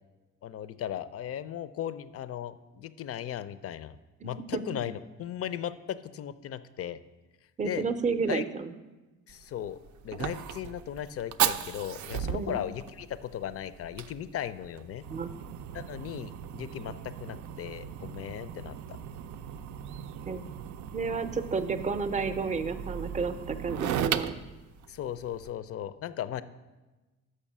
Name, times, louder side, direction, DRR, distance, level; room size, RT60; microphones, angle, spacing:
voice 1, 0.4-4.0 4.2-7.0 7.6-7.8 8.3-8.4 9.3-9.8 10.0-15.0 15.7-19.0 24.9-26.4, left 10 dB, 50° left, 14 dB, 0.4 m, -37 dB
voice 2, 4.2-4.6 7.6-8.7 12.3-12.6 15.1-15.3 20.3-20.4 20.9-24.3, right 4 dB, 25° right, 10 dB, 0.5 m, -31 dB
Fire, 9.3-25.5, right 9 dB, 75° right, 0.5 m, -36 dB
6.5 x 5.5 x 7.2 m, 1.2 s
cardioid pair, 90°, 30 cm